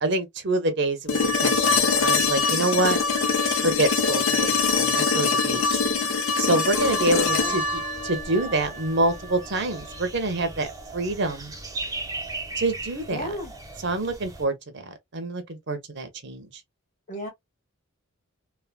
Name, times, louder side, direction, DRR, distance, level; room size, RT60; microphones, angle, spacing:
voice 1, 0.0-3.0 3.6-5.8 6.4-11.5 12.6-13.4 13.8-14.5 14.9-16.5, right 2 dB, 55° right, 0.7 m, -26 dB
sound 1, 1.1-9.1 11.3-11.4, left 4 dB, 70° left, 0.7 m, -23 dB
sound 2, 6.7-14.4, right 3 dB, 15° right, 0.7 m, -37 dB
voice 2, 7.0-7.6 13.1-13.5 17.1-17.3, equal, 35° left, 1.5 m, -33 dB
3.3 x 2.1 x 2.2 m
head